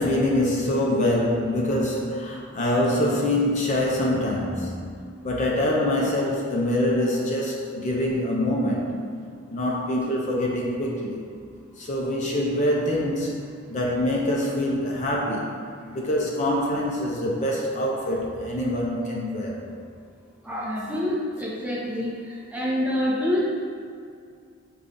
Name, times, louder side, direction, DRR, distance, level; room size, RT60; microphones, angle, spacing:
voice 1, 0.0-4.9 5.2-8.9 9.5-11.2 11.8-15.6 15.9-19.6, left 1 dB, 40° left, -3 dB, 0.5 m, -25 dB
voice 2, 20.4-23.5, left 1 dB, 5° right, -5 dB, 0.6 m, -27 dB
5.3 x 2.3 x 3.7 m, 2.3 s
head